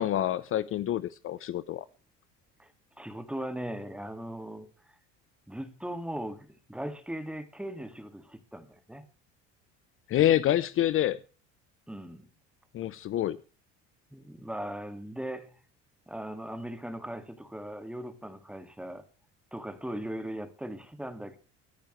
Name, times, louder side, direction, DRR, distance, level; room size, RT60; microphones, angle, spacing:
voice 1, 0.0-1.8 10.1-11.2 12.7-13.4, left 12 dB, 45° left, 0.8 m, -27 dB
voice 2, 3.0-5.0 5.5-9.0 11.9-12.3 14.1-15.6 16.1-19.0 19.5-21.4, right 1 dB, 5° right, 2.0 m, -39 dB
24.0 x 10.0 x 3.2 m
cardioid pair, 115°, 29 cm